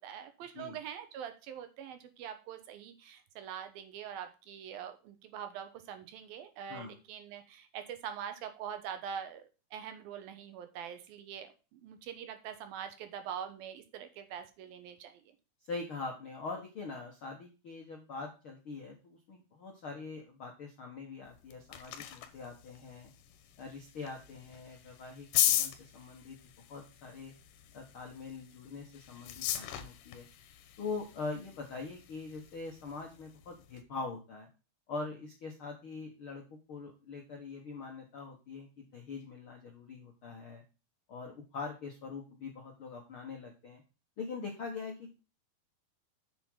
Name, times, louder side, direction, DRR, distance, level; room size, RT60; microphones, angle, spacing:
voice 1, 0.0-9.4 9.7-15.2, right 8 dB, 75° right, 8 dB, 2.6 m, -44 dB
voice 2, 15.7-23.1 23.6-26.4 26.7-27.3 27.7-30.3 30.8-34.5 34.9-40.6 41.1-43.8 44.2-45.2, left 4 dB, 60° left, 1 dB, 1.3 m, -43 dB
sound 1, 21.3-33.8, left 11 dB, 85° left, 3.2 m, -38 dB
8.1 x 7.5 x 3.7 m, 0.31 s
omnidirectional pair, 4.6 m